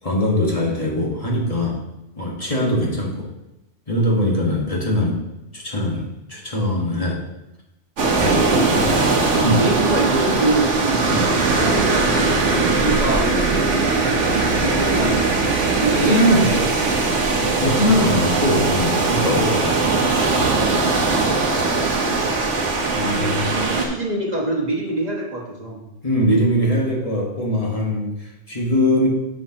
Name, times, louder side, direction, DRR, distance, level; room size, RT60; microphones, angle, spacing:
voice 1, 0.0-1.8 2.1-3.3 3.9-5.2 5.5-7.2 8.2-8.4 9.4-9.6 11.1-11.3 15.9-16.5 17.6-20.0 20.3-20.6 22.9-23.5 26.0-29.1, left 1 dB, 30° left, -3 dB, 1.6 m, -21 dB
sound 1, 8.0-23.9, right 3 dB, 80° right, 1.4 m, -20 dB
voice 2, 8.5-13.3 13.8-15.3 15.8-17.6 21.1-21.5 23.0-25.8, right 2 dB, 35° right, -1 dB, 1.4 m, -26 dB
9.3 x 6.2 x 2.9 m, 0.94 s
omnidirectional pair, 1.2 m